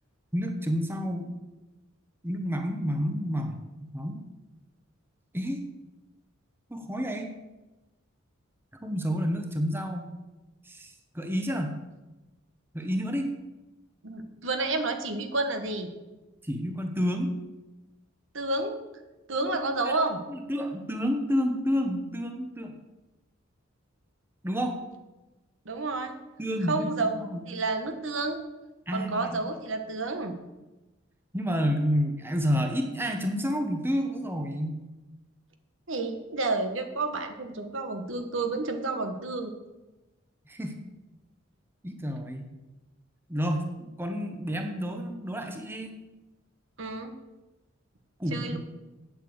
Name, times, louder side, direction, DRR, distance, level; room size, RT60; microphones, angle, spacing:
voice 1, 0.3-1.3 2.2-3.6 3.9-4.2 5.3-5.6 6.7-7.3 8.8-10.1 10.7-11.8 12.7-13.3 16.4-17.3 19.6-19.9 20.3-22.7 24.4-24.8 26.4-27.4 28.9-29.4 31.3-34.8 40.5-40.8 41.8-42.5 43.3-45.9 48.2-48.6, equal, 10° right, 4 dB, 1.1 m, -29 dB
voice 2, 14.0-15.9 18.3-18.7 19.3-20.2 25.6-26.1 26.7-27.1 27.5-28.4 28.9-30.3 35.9-39.5 46.8-47.1 48.3-48.6, right 3 dB, 70° right, 6 dB, 1.4 m, -30 dB
9.0 x 8.1 x 8.0 m, 1.1 s
head